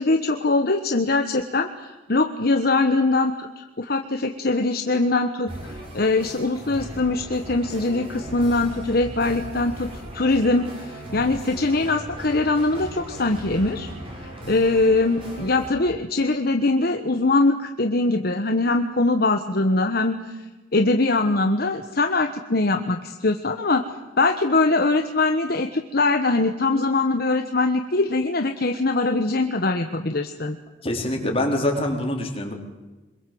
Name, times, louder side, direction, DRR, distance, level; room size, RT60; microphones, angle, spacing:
voice 1, 0.0-13.9 14.1-20.4 20.7-23.8 24.2-30.6, left 2 dB, 55° left, 6 dB, 1.2 m, -22 dB
sound 1, 5.5-15.7, right 1 dB, 30° right, 6.7 m, -38 dB
voice 2, 30.8-32.5, left 1 dB, 30° left, 1 dB, 4.2 m, -24 dB
25.5 x 22.0 x 7.8 m, 1.2 s
head